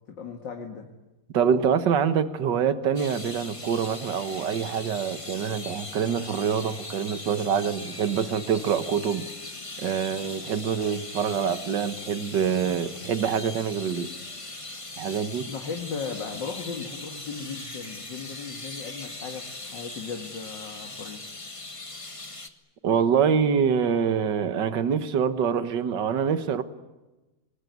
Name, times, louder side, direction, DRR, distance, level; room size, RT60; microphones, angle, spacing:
voice 1, 0.1-0.9 15.4-21.2, left 5 dB, 60° left, 4 dB, 2.5 m, -37 dB
voice 2, 1.3-9.3 9.8-14.1 15.0-15.5 22.8-26.6, right 7 dB, 60° right, 11 dB, 1.9 m, -25 dB
sound 1, 3.0-22.5, left 2 dB, 15° left, 1.4 m, -40 dB
25.5 x 20.5 x 9.5 m, 1.1 s
omnidirectional pair, 2.3 m